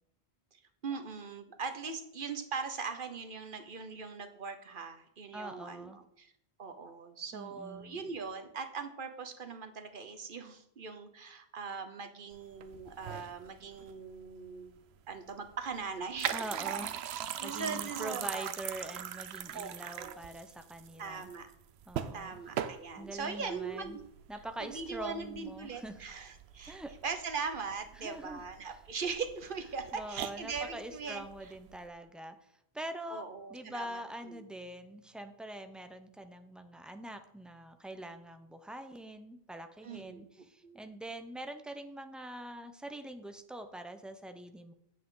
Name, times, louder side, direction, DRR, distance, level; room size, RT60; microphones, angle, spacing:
voice 1, 0.5-6.3 6.6-14.8 15.1-16.4 17.4-18.5 19.5-20.2 21.0-21.5 22.1-24.0 24.6-31.2 33.1-34.4 39.8-40.2 40.6-40.8, right 5 dB, 55° right, 7 dB, 1.1 m, -40 dB
voice 2, 5.3-6.0 7.3-8.0 16.3-21.3 21.9-22.3 23.0-24.0 24.3-26.0 26.7-26.9 28.0-28.4 29.9-33.2 33.5-44.7, right 1 dB, ahead, 7 dB, 0.5 m, -44 dB
sound 1, 12.3-31.9, right 10 dB, 80° right, 0.8 m, -42 dB
8.5 x 7.7 x 3.8 m, 0.75 s
omnidirectional pair, 1.1 m